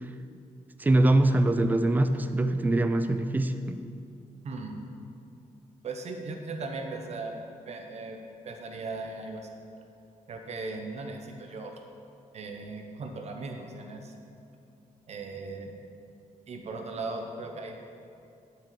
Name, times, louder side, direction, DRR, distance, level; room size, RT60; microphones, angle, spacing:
voice 1, 0.8-3.8, right 1 dB, 15° right, 9 dB, 0.3 m, -23 dB
voice 2, 4.4-4.8 5.8-7.4 7.7-8.2 8.4-9.4 10.3-11.8 12.3-14.1 15.1-15.8 16.5-17.8, right 3 dB, 55° right, 3 dB, 0.8 m, -38 dB
11.0 x 4.9 x 4.7 m, 2.5 s
wide cardioid pair, 170°, 13 cm